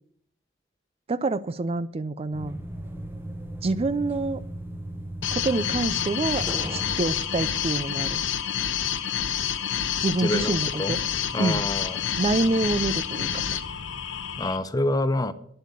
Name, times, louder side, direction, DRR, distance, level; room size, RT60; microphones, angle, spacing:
voice 1, 1.1-2.6 3.6-4.4 5.3-8.2 10.0-11.0 11.4-11.6 12.2-13.4, right 3 dB, 30° right, 15 dB, 0.4 m, -27 dB
sound 1, 2.3-8.2, right 1 dB, 10° right, 1.0 m, -37 dB
sound 2, 5.2-14.6, left 8 dB, 75° left, 0.8 m, -28 dB
voice 2, 10.2-10.9 11.3-12.0 14.4-15.3, left 1 dB, 20° left, 12 dB, 0.7 m, -27 dB
10.0 x 7.8 x 8.5 m, 0.68 s
head